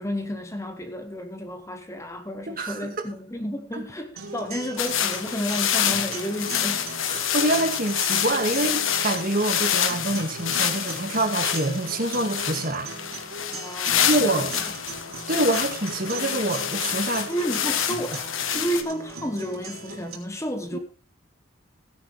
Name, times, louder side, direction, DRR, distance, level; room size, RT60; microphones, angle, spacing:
voice 1, 0.0-6.9 13.5-14.6 17.3-18.3 18.5-20.8, equal, 15° left, 1.1 m, -31 dB
voice 2, 2.5-2.9 3.7-3.8 7.1-12.9 14.0-14.5 15.3-17.3 20.7-20.8, right 1 dB, 40° right, 2.1 m, -26 dB
sound 1, 4.2-20.2, right 3 dB, 85° right, 3.3 m, -39 dB
sound 2, 4.8-18.8, left 9 dB, 70° left, 1.3 m, -27 dB
16.5 x 10.5 x 3.4 m
head